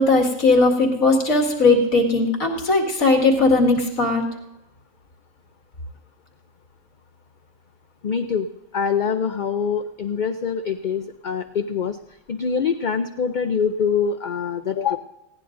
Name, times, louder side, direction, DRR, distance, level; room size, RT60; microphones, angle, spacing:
voice 1, 0.0-4.2, left 3 dB, 85° left, 0 dB, 2.4 m, -18 dB
voice 2, 8.0-8.5 8.7-12.0 12.3-15.0, left 6 dB, 55° left, 8 dB, 0.5 m, -24 dB
19.5 x 16.5 x 2.6 m, 0.95 s
omnidirectional pair, 1.4 m